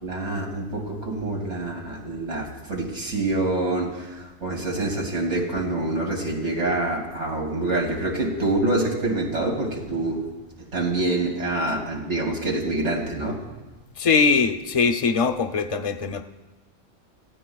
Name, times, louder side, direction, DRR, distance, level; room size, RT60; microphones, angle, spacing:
voice 1, 0.0-10.2 10.7-13.4, right 2 dB, 75° right, -1 dB, 2.8 m, -26 dB
voice 2, 14.0-16.2, left 5 dB, 35° left, 7 dB, 0.7 m, -21 dB
29.0 x 16.0 x 2.3 m, 1.2 s
omnidirectional pair, 1.2 m